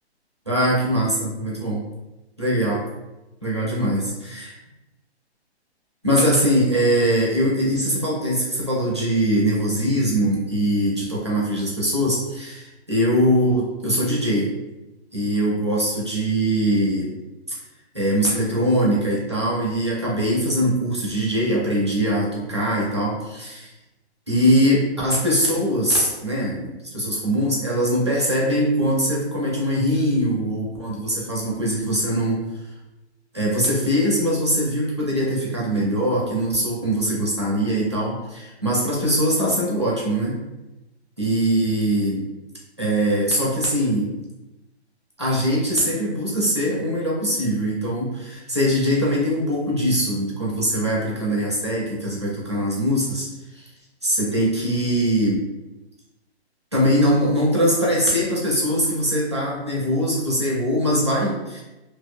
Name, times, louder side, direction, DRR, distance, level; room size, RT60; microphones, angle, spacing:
voice 1, 0.5-1.9 2.4-2.8 3.4-4.6 6.0-14.5 15.1-17.1 17.5-17.6 17.9-23.7 24.3-32.4 33.3-40.4 41.2-42.2 42.8-44.1 45.2-53.3 53.5-53.7 54.0-55.4 56.7-61.6, equal, 25° right, -6 dB, 0.4 m, -22 dB
2.6 x 2.3 x 2.5 m, 1.0 s
hypercardioid pair, 180°, 34 cm